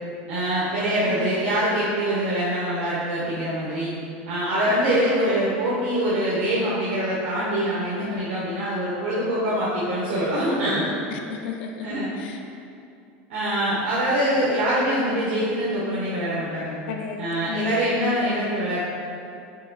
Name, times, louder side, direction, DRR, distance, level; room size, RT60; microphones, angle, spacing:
voice 1, 0.3-3.9 4.3-10.9 11.8-12.1 13.3-16.7 17.2-18.8, right 1 dB, 85° right, -8 dB, 0.7 m, -24 dB
voice 2, 1.0-1.3 4.7-5.0 11.1-11.9 12.1-12.4 16.9-17.9, left 7 dB, 75° left, 3 dB, 0.3 m, -33 dB
4.6 x 2.4 x 2.4 m, 2.5 s
supercardioid pair, 115°, 6 cm